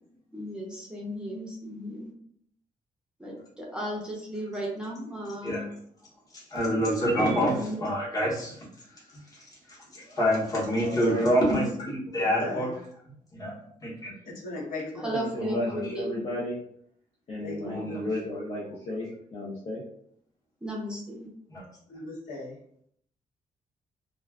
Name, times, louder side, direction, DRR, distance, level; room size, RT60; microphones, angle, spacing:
voice 1, 0.3-2.1 3.2-5.6 7.4-7.8 15.0-16.2 20.6-21.3, right 1 dB, 5° right, -4 dB, 0.6 m, -35 dB
voice 2, 6.3-12.7 13.3-13.5 13.8-14.1 15.4-15.9 17.6-18.2 21.5-21.7, equal, 25° left, -5 dB, 1.0 m, -28 dB
voice 3, 10.8-11.3 15.1-16.6 17.3-19.8, left 1 dB, 45° left, -5 dB, 0.7 m, -33 dB
voice 4, 12.1-12.7 14.2-15.2 17.4-18.1 21.9-22.6, left 2 dB, 75° left, -5 dB, 1.1 m, -37 dB
2.3 x 2.3 x 3.4 m, 0.66 s
wide cardioid pair, 160°, 14 cm